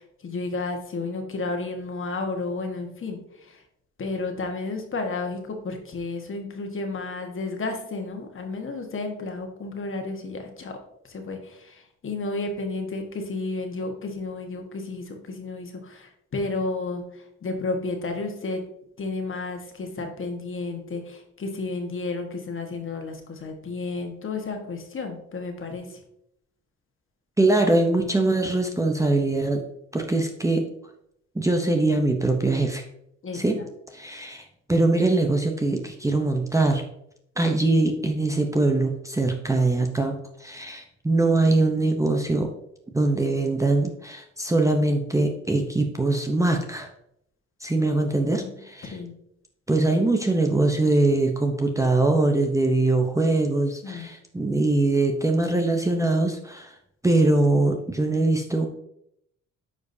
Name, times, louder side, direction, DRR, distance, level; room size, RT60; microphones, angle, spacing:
voice 1, 0.0-3.6 4.0-10.8 11.1-18.6 19.0-26.0 33.2-33.7 48.4-48.5 48.8-49.1 53.8-54.1, left 3 dB, 45° left, 4 dB, 1.5 m, -32 dB
voice 2, 27.4-29.6 29.9-30.7 31.3-32.8 33.3-33.6 33.9-36.8 37.4-42.5 42.9-46.9 47.6-49.0 49.7-56.8 57.0-58.7, right 2 dB, 10° right, 3 dB, 0.7 m, -22 dB
9.5 x 5.0 x 2.7 m, 0.75 s
cardioid pair, 90°, 30 cm